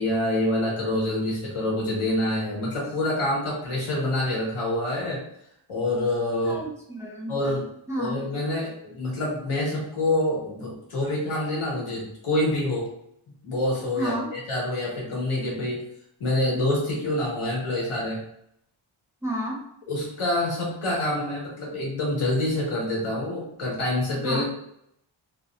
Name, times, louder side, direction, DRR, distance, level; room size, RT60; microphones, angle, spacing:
voice 1, 0.0-5.2 5.7-6.6 7.3-7.7 8.0-12.9 13.4-15.8 16.2-18.2 19.9-24.4, left 1 dB, 90° left, -4 dB, 1.4 m, -26 dB
voice 2, 6.4-7.4 7.9-8.2 11.0-11.1 14.0-14.3 19.2-19.6 24.2-24.4, right 1 dB, 5° right, -3 dB, 0.4 m, -31 dB
3.0 x 2.9 x 2.4 m, 0.74 s
wide cardioid pair, 165°, 48 cm